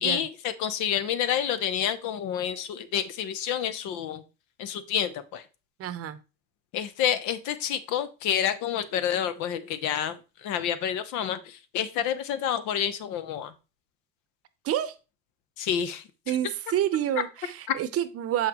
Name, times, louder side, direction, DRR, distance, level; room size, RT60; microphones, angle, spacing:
voice 1, 0.0-4.2 4.6-5.4 6.7-13.5 15.6-16.0, left 9 dB, 70° left, 0.9 m, -29 dB
voice 2, 5.8-6.2 14.6-14.9 16.3-18.5, right 11 dB, 50° right, 0.8 m, -28 dB
6.5 x 5.6 x 3.0 m
supercardioid pair, 105°, 31 cm